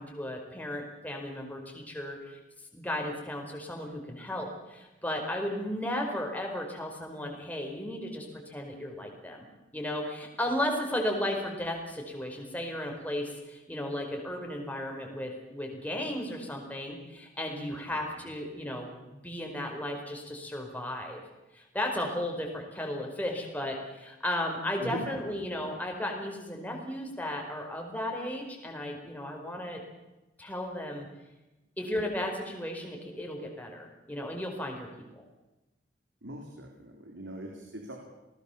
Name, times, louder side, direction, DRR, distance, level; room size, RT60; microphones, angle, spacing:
voice 1, 0.0-2.4 2.7-9.4 9.7-21.2 21.5-29.8 30.4-31.1 31.8-34.9, left 1 dB, 10° left, 1 dB, 4.8 m, -35 dB
voice 2, 17.7-18.0 24.8-25.7 36.2-38.0, equal, 80° right, 2 dB, 3.8 m, -42 dB
27.5 x 19.0 x 7.2 m, 1.0 s
head